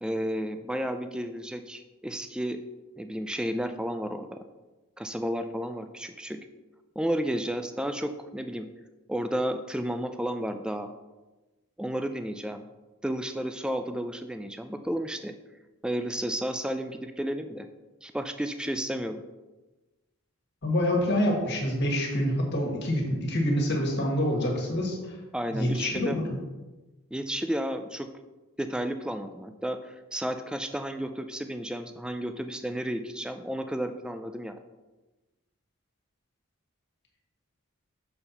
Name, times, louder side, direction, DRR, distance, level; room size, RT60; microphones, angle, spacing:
voice 1, 0.0-2.6 3.0-4.4 5.0-6.4 7.0-8.7 9.1-10.9 11.8-12.6 13.0-15.3 15.8-17.7 18.0-19.2 25.3-26.2 27.1-28.1 28.6-34.6, equal, 5° right, 8 dB, 0.3 m, -32 dB
voice 2, 20.6-25.1 25.5-26.4, left 1 dB, 50° left, 0 dB, 1.7 m, -26 dB
6.8 x 4.4 x 5.6 m, 1.1 s
head